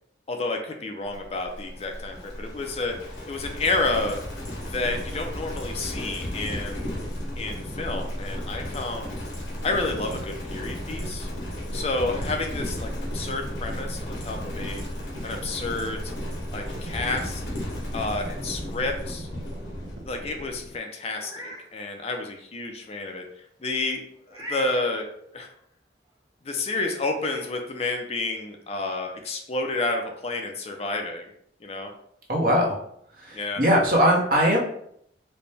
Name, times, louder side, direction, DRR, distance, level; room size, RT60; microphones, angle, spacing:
voice 1, 0.3-3.0 3.3-4.2 4.7-7.0 7.4-9.2 9.6-11.3 11.7-14.8 15.2-16.1 16.5-17.4 17.9-19.3 20.0-23.3 23.6-24.0 24.3-25.1 25.3-25.5 26.4-31.3 31.6-31.9 33.3-33.6, left 2 dB, 35° left, 4 dB, 0.4 m, -30 dB
Livestock farm animals working animals, 1.1-20.8, equal, 80° left, 1.0 m, -34 dB
sound 1, 8.6-20.1, right 2 dB, 80° right, 0.7 m, -44 dB
Meow, 21.1-21.6 22.1-22.2 24.3-24.9 26.5-26.6 27.1-27.4, equal, 20° right, 0.8 m, -38 dB
voice 2, 32.3-32.8 33.1-34.6, equal, 50° right, -1 dB, 0.9 m, -21 dB
4.2 x 2.2 x 3.3 m, 0.71 s
head